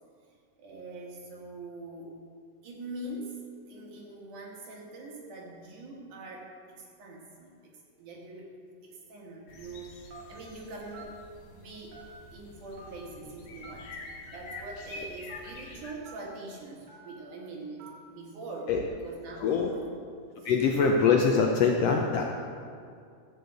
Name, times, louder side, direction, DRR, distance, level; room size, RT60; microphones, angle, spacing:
voice 1, 0.6-2.1 2.6-3.4 3.7-8.5 8.8-11.1 11.5-11.9 12.3-13.9 14.2-17.8 18.1-18.7 19.0-19.9 20.4-20.7, right 2 dB, 80° right, -1 dB, 3.1 m, -43 dB
sound 1, 9.5-15.9, left 2 dB, 60° left, 1.8 m, -47 dB
Telephone, 10.1-10.4 10.9-11.1 11.9-12.3 12.8-12.9 13.6-13.8 14.5-14.6 15.3-15.4 16.1-16.2 16.9-17.1 17.8-18.0, right 4 dB, 40° right, 2.1 m, -48 dB
voice 2, 19.4-19.7 20.4-22.2, left 5 dB, 75° left, 1 dB, 1.5 m, -23 dB
12.5 x 5.0 x 7.8 m, 2.3 s
omnidirectional pair, 3.6 m